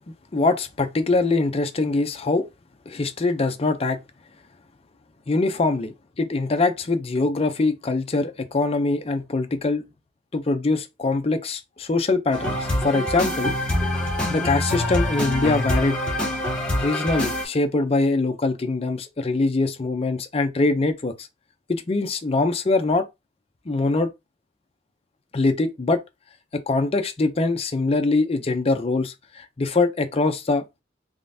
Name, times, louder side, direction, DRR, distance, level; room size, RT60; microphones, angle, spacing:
voice 1, 0.3-2.4 2.9-4.0 5.3-9.8 10.3-13.5 14.3-16.0 16.8-21.3 21.7-23.0 23.7-24.1 25.3-26.0 26.5-30.6, left 3 dB, 30° left, 0.5 m, -23 dB
sound 1, 12.3-17.4, left 1 dB, 5° left, 1.4 m, -25 dB
3.6 x 3.3 x 2.6 m
head